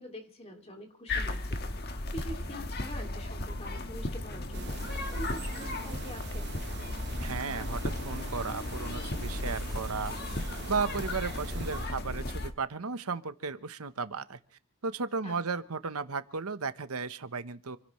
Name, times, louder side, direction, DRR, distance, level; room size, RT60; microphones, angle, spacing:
voice 1, 0.0-1.7 2.1-4.8 5.1-6.5 15.2-15.3, equal, 25° left, 4 dB, 2.6 m, -45 dB
sound 1, 1.1-12.5, left 2 dB, 45° left, 1.5 m, -35 dB
sound 2, 4.5-11.9, right 4 dB, 50° right, 1.1 m, -45 dB
voice 2, 7.2-10.2 10.7-14.4 14.8-17.8, right 4 dB, 85° right, 12 dB, 1.0 m, -35 dB
28.0 x 16.0 x 3.2 m, 0.39 s
head